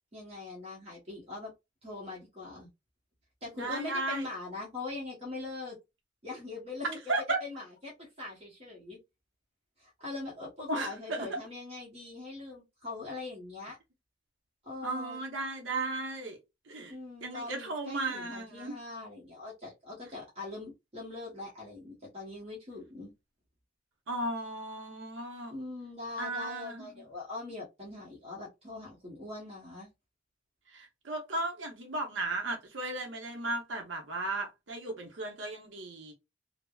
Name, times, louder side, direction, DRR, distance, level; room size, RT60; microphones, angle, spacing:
voice 1, 0.1-1.5 1.8-2.7 3.4-5.8 6.2-7.0 7.4-9.0 9.8-13.8 14.6-15.2 16.9-23.1 25.5-29.9, left 3 dB, 30° right, 0.9 m, -42 dB
voice 2, 3.6-4.3 7.1-7.4 10.7-11.4 14.8-16.4 16.7-16.9 17.2-18.7 24.1-25.6 26.2-26.9 30.7-36.1, right 2 dB, 70° right, 0.7 m, -35 dB
3.3 x 2.0 x 2.2 m
head